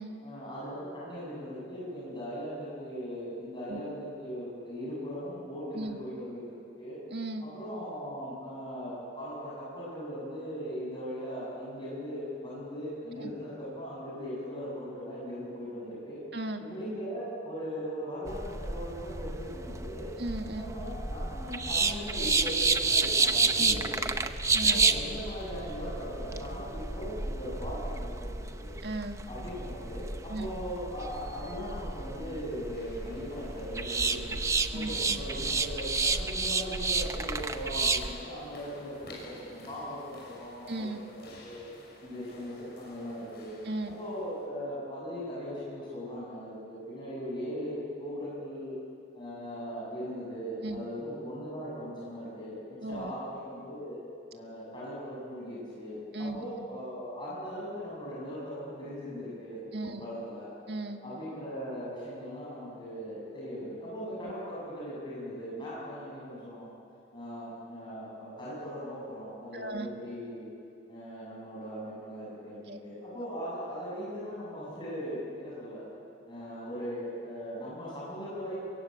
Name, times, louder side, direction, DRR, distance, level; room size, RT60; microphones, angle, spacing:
voice 1, 0.2-7.0 7.4-16.2 16.6-20.1 20.5-24.3 24.6-28.8 29.3-34.4 34.7-41.6 42.0-43.6 43.9-48.8 49.1-54.0 54.3-60.5 61.0-66.7 67.1-70.5 70.9-75.9 76.3-78.6, equal, 25° left, -7 dB, 7.4 m, -39 dB
voice 2, 7.1-7.4 13.2-13.3 16.3-16.6 20.2-20.6 23.6-23.8 24.5-24.8 28.8-29.2 30.3-30.5 34.7-35.2 40.7-41.0 43.6-44.0 50.6-50.8 52.8-53.1 56.1-56.4 59.7-60.0 60.7-61.0 69.5-69.9 72.7-72.8, right 2 dB, 65° right, 5 dB, 1.8 m, -36 dB
sound 1, 18.3-38.1, right 4 dB, 15° right, 0.7 m, -30 dB
sound 2, 32.5-44.5, left 2 dB, 60° left, 6.0 m, -53 dB
23.5 x 22.5 x 8.8 m, 2.5 s
head